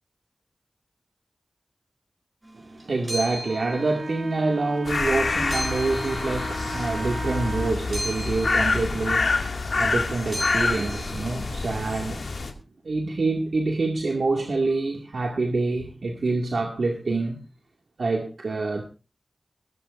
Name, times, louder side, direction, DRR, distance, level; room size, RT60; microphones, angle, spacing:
sound 1, 2.4-12.4, equal, 30° right, 6.1 m, -38 dB
voice 1, 2.6-12.5 12.8-17.4 18.0-18.8, right 3 dB, 85° right, 2.2 m, -26 dB
Wind instrument woodwind instrument, 3.4-7.8, right 2 dB, 65° right, 2.5 m, -37 dB
sound 2, 4.8-12.5, left 3 dB, 85° left, 2.2 m, -27 dB
20.5 x 14.5 x 2.6 m
wide cardioid pair, 60°, 0 cm